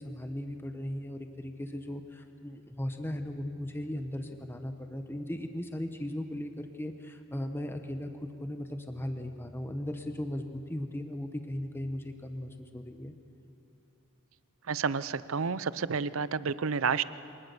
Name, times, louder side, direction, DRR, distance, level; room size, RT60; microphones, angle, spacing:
voice 1, 0.0-13.1, left 1 dB, 10° left, 6 dB, 0.9 m, -37 dB
voice 2, 14.7-17.0, right 5 dB, 70° right, 16 dB, 0.6 m, -30 dB
25.5 x 19.5 x 6.8 m, 2.9 s
head